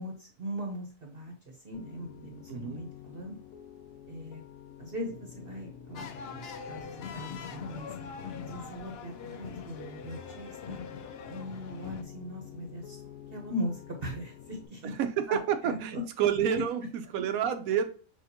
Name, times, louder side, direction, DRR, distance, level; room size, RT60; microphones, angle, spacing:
voice 1, 0.0-3.4 4.1-4.4 4.8-7.9 8.4-10.8 11.3-13.0 13.3-15.0 15.3-16.0, equal, 45° right, 1.0 m, -40 dB
Piano, 1.7-14.7, left 9 dB, 80° left, 1.1 m, -49 dB
voice 2, 2.5-2.8 14.8-17.9, right 8 dB, 75° right, 1.1 m, -29 dB
sound 1, 5.9-12.0, left 6 dB, 60° left, 0.7 m, -42 dB
6.3 x 2.5 x 2.8 m
omnidirectional pair, 1.5 m